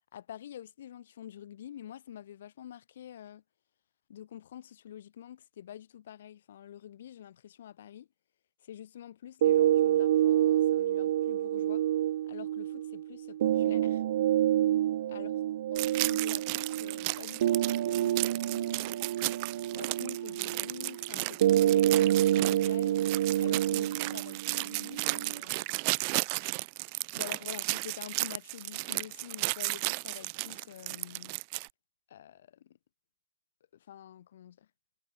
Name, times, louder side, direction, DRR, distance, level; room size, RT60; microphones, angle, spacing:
voice 1, 0.1-3.4 4.1-8.1 8.6-11.8 12.2-14.0 15.1-15.3 15.7-19.1 19.7-23.0 23.4-25.7 27.1-31.4 32.1-32.8 33.9-34.7, left 10 dB, 70° left, 7.1 m, -47 dB
sound 1, 9.4-25.4, right 12 dB, 65° right, 0.4 m, -28 dB
sound 2, 15.8-31.7, right 34 dB, 45° right, 1.1 m, -34 dB
hypercardioid pair, 125°, 0 cm